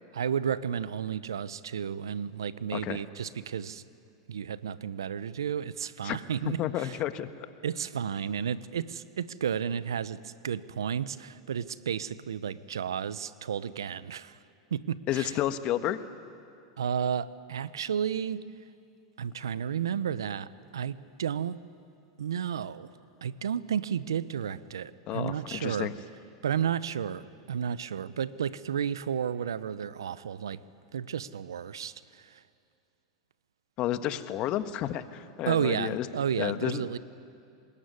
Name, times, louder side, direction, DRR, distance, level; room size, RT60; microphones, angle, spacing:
voice 1, 0.1-3.8 4.3-7.0 7.6-14.4 14.7-15.4 16.8-18.4 19.2-21.6 22.2-22.9 23.2-25.9 26.4-30.6 30.9-32.4 35.5-37.0, right 8 dB, 85° right, 17 dB, 0.8 m, -32 dB
voice 2, 6.6-7.5 15.1-16.0 25.1-25.9 33.8-36.1 36.4-37.0, left 12 dB, 45° left, 10 dB, 1.4 m, -31 dB
25.5 x 21.0 x 9.6 m, 2.5 s
hypercardioid pair, 100°, 2 cm